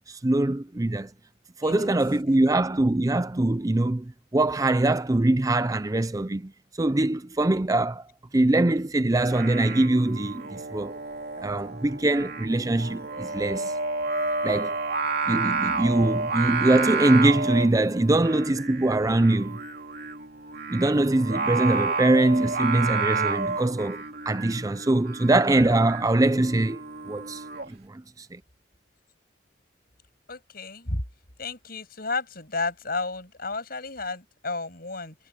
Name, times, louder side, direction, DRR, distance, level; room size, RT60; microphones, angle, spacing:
voice 1, 0.1-1.1 1.6-6.5 6.8-8.1 8.3-10.9 11.4-13.7 14.4-14.8 15.3-19.6 20.7-26.8 27.1-27.4 27.7-28.4, right 2 dB, 20° right, 0.5 m, -23 dB
voice 2, 1.6-1.9 2.3-2.4 30.3-31.0 31.4-35.2, left 3 dB, 55° left, 7.8 m, -32 dB
Singing, 9.2-27.7, right 4 dB, 60° right, 2.8 m, -31 dB
head